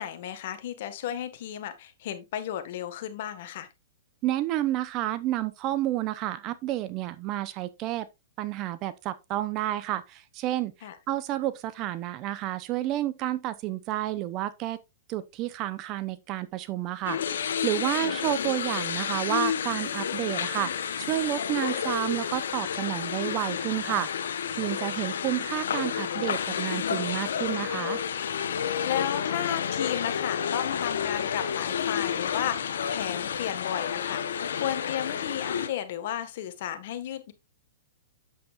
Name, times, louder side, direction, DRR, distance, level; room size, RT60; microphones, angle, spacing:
voice 1, 0.0-3.7 10.8-11.0 18.0-18.5 28.8-37.3, left 11 dB, 55° left, 1.6 m, -34 dB
voice 2, 4.2-8.1 8.4-14.8 15.1-28.0, right 14 dB, 35° right, 0.8 m, -30 dB
sound 1, 17.0-35.7, left 8 dB, 80° left, 1.1 m, -30 dB
8.6 x 7.6 x 2.5 m
hypercardioid pair, 135°, 0 cm